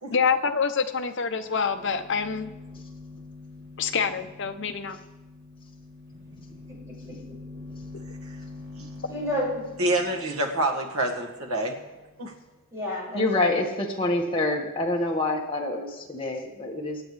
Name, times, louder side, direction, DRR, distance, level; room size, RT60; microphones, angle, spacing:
voice 1, 0.1-2.5 3.8-5.0, left 6 dB, 55° left, 7 dB, 0.8 m, -26 dB
sound 1, 0.9-1.0 1.3-12.4, left 2 dB, 55° right, 3.0 m, -45 dB
voice 2, 6.7-7.6 9.1-9.6 12.7-13.6, left 1 dB, 15° right, -6 dB, 6.0 m, -32 dB
voice 3, 9.8-11.8 12.2-12.3, right 1 dB, 80° right, 1 dB, 2.0 m, -27 dB
voice 4, 13.1-17.0, left 2 dB, 25° left, -1 dB, 1.8 m, -26 dB
25.0 x 9.1 x 3.4 m, 1.1 s
head